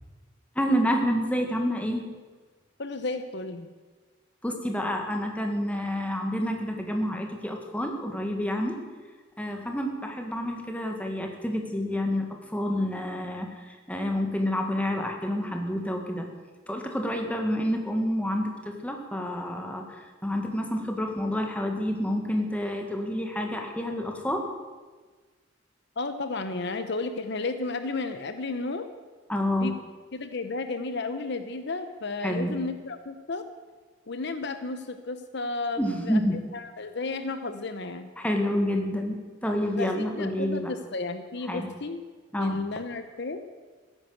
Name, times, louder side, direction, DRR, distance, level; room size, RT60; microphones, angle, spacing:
voice 1, 0.6-2.1 4.4-8.8 9.4-16.3 16.7-24.4 29.3-29.7 32.2-32.5 35.8-36.4 38.2-40.7 41.5-41.7 42.3-42.6, equal, 5° left, 3 dB, 1.9 m, -28 dB
voice 2, 2.8-3.7 26.0-28.9 29.6-29.7 30.1-33.5 34.1-35.8 36.0-36.2 36.5-38.1 39.8-42.0 42.4-43.4, left 3 dB, 60° left, 9 dB, 0.9 m, -33 dB
15.0 x 11.0 x 8.0 m, 1.4 s
head